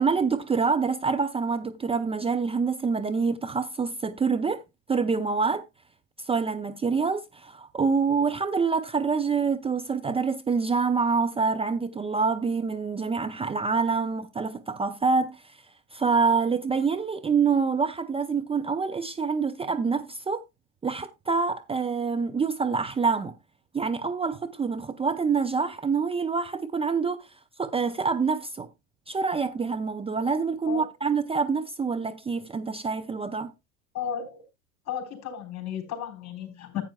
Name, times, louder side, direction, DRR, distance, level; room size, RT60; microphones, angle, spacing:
voice 1, 0.0-4.6 4.9-5.6 6.2-15.6 15.9-20.4 20.8-23.3 23.7-27.3 27.6-28.7 29.1-33.5, right 5 dB, 15° right, 0.6 m, -26 dB
voice 2, 33.9-34.5 34.9-36.8, left 9 dB, 35° left, 3.8 m, -34 dB
14.5 x 8.7 x 2.2 m
figure-of-eight pair, 80°, 44 cm